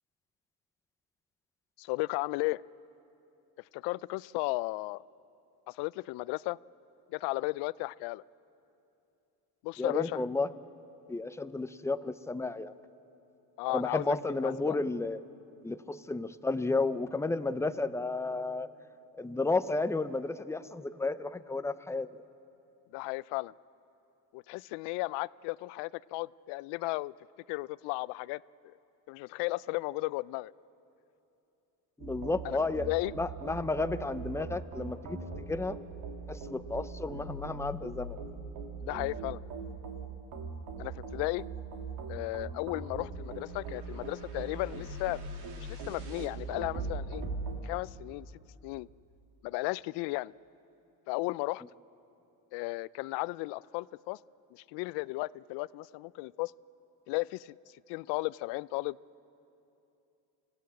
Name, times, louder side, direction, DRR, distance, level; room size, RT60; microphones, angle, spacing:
voice 1, 1.8-2.6 3.7-5.0 5.7-6.6 7.1-8.2 9.6-10.2 13.6-14.0 14.4-14.8 22.9-23.5 24.3-27.1 27.5-28.7 29.1-30.5 32.4-32.6 32.9-33.1 38.8-39.4 40.8-41.4 42.1-45.2 45.6-47.2 47.6-48.3 48.6-48.9 49.4-50.3 51.1-51.6 52.5-54.2 54.5-56.5 57.1-57.5 57.9-59.0, left 22 dB, 70° left, 20 dB, 0.5 m, -34 dB
voice 2, 9.8-10.5 11.1-12.7 13.7-15.2 15.6-18.7 19.2-22.2 32.0-32.9 33.1-35.8 36.3-38.2, left 3 dB, 5° left, 12 dB, 0.6 m, -32 dB
sound 1, 32.0-47.6, right 4 dB, 65° right, 3.3 m, -40 dB
26.0 x 17.0 x 8.3 m, 2.8 s
supercardioid pair, 105°, 44 cm